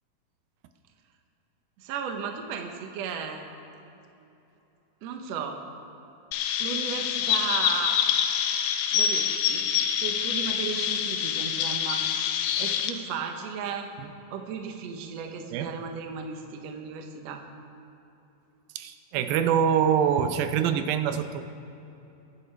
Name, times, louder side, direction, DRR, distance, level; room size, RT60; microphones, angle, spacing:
voice 1, 1.8-3.4 5.0-5.6 6.6-8.0 8.9-9.7 9.9-12.0 12.6-13.9 14.3-17.4, right 6 dB, 70° right, 4 dB, 1.7 m, -35 dB
Chirp tweet, 6.3-12.9, left 9 dB, 85° left, 2.6 m, -26 dB
voice 2, 18.8-21.4, right 8 dB, 85° right, 8 dB, 2.5 m, -25 dB
22.5 x 9.7 x 3.4 m, 2.9 s
omnidirectional pair, 4.1 m